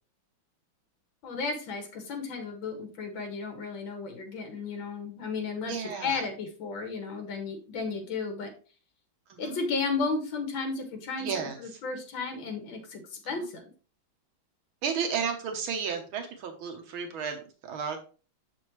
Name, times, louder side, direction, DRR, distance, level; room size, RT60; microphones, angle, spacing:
voice 1, 1.2-8.5 9.4-13.6, left 4 dB, 70° left, 5 dB, 2.2 m, -34 dB
voice 2, 5.6-6.2 9.3-9.6 11.2-11.6 13.4-13.5 14.8-18.0, right 6 dB, 80° right, 5 dB, 1.8 m, -33 dB
7.2 x 5.4 x 3.0 m, 0.36 s
omnidirectional pair, 2.2 m